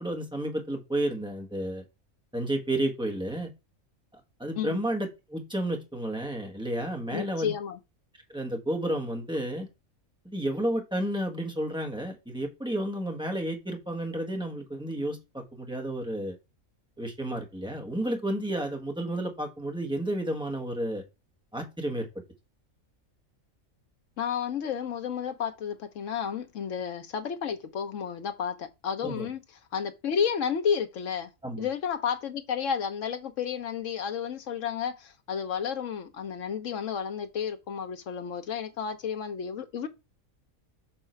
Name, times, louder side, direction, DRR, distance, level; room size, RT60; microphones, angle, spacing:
voice 1, 0.0-1.8 2.3-3.5 4.4-7.5 8.3-9.7 10.2-16.4 17.0-21.0 21.5-22.1 29.0-29.3 31.4-31.7, right 1 dB, 5° right, 1.3 m, -31 dB
voice 2, 7.1-7.8 24.2-29.4 29.7-31.3 31.6-39.9, left 7 dB, 65° left, 1.2 m, -31 dB
7.2 x 3.7 x 4.5 m
omnidirectional pair, 1.5 m